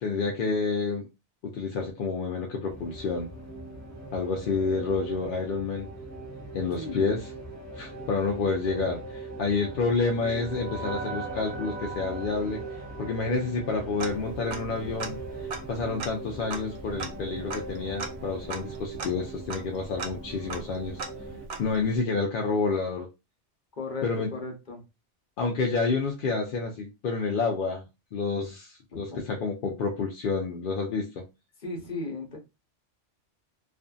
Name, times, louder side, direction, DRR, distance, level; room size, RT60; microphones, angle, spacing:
voice 1, 0.0-1.1 1.4-3.3 4.1-5.9 6.5-7.3 7.7-12.6 13.0-21.0 21.6-23.1 24.0-24.3 25.4-27.8 28.1-31.2, left 4 dB, 60° left, 0.6 m, -29 dB
sound 1, 2.7-21.5, right 2 dB, 15° left, 1.1 m, -40 dB
voice 2, 6.8-7.1 23.8-24.0 24.3-24.8 28.9-29.2 31.6-32.4, left 3 dB, 45° left, 0.9 m, -36 dB
sound 2, 9.2-14.5, right 5 dB, 60° right, 0.5 m, -42 dB
Tick-tock, 14.0-14.7 15.0-15.1 15.5-22.0, right 4 dB, 80° right, 0.9 m, -39 dB
2.6 x 2.4 x 2.2 m
omnidirectional pair, 1.2 m